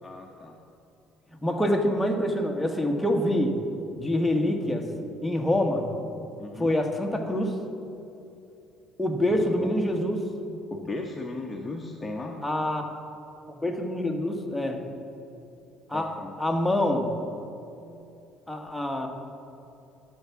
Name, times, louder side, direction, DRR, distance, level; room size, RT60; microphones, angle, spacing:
voice 1, 0.0-0.6 6.4-6.8 9.3-9.7 10.7-12.4 15.9-16.4, left 2 dB, 25° left, 1 dB, 0.9 m, -36 dB
voice 2, 1.4-3.6 4.0-4.9 5.2-5.8 6.6-7.6 9.0-10.2 12.4-12.9 13.5-14.8 15.9-16.1 16.4-17.1 18.5-19.1, left 1 dB, 5° left, 2 dB, 1.3 m, -26 dB
12.5 x 4.7 x 7.1 m, 2.8 s
hypercardioid pair, 65°, 0 cm